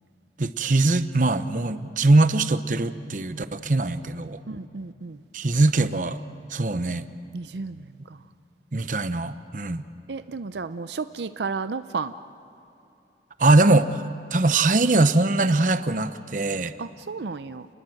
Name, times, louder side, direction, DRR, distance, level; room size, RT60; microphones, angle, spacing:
voice 1, 0.4-4.4 5.3-6.2 6.5-7.1 8.7-9.8 13.4-14.0 14.3-16.7, right 2 dB, 45° right, 12 dB, 0.8 m, -21 dB
voice 2, 4.5-5.2 7.3-8.2 10.1-12.1 16.8-17.7, right 4 dB, 80° right, 12 dB, 0.6 m, -33 dB
29.5 x 20.5 x 7.8 m, 2.9 s
head